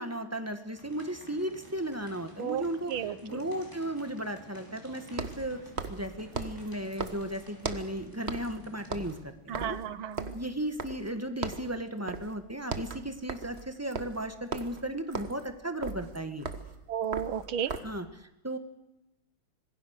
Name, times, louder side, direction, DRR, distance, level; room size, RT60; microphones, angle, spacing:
voice 1, 0.0-5.6 5.9-9.8 10.3-16.5 17.8-18.6, right 1 dB, 10° right, 7 dB, 1.3 m, -35 dB
sound 1, 0.7-9.2, equal, 10° left, 5.4 m, -52 dB
sound 2, 1.8-1.9 5.1-8.0 8.3-8.6 8.8-11.2 11.4-11.7 12.1-12.4 12.6-18.0, right 4 dB, 35° right, 1.4 m, -38 dB
voice 2, 2.9-3.4 9.5-10.3 16.9-17.7, right 8 dB, 70° right, 14 dB, 1.9 m, -33 dB
26.5 x 20.5 x 6.6 m, 0.94 s
omnidirectional pair, 2.4 m